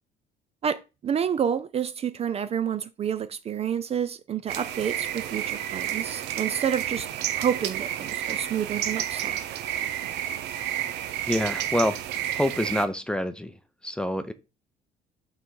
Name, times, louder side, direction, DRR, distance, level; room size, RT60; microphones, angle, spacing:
voice 1, 0.6-7.1 7.3-9.4, right 8 dB, 35° right, 0.5 m, -29 dB
sound 1, 4.5-12.9, right 11 dB, 85° right, 0.7 m, -31 dB
voice 2, 11.3-13.6 13.8-14.3, left 1 dB, 5° left, 0.6 m, -27 dB
5.6 x 3.9 x 4.7 m
cardioid pair, 110°, 17 cm